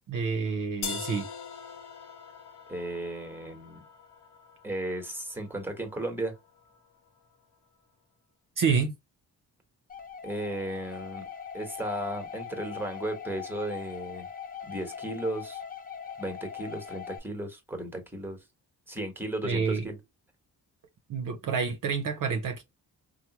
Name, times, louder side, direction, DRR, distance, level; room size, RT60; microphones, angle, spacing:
voice 1, 0.1-1.3 8.6-8.9 19.4-19.9 21.1-22.6, right 5 dB, 55° right, 0.6 m, -28 dB
sound 1, 0.8-6.8, left 6 dB, 75° left, 0.8 m, -43 dB
voice 2, 2.7-3.8 4.6-6.3 10.2-11.2 11.5-14.3 14.7-15.6 16.2-18.4 18.9-20.0, right 1 dB, 5° right, 1.1 m, -35 dB
sound 2, 9.9-17.2, left 7 dB, 20° left, 0.6 m, -41 dB
3.2 x 2.0 x 2.8 m
cardioid pair, 70°, 40 cm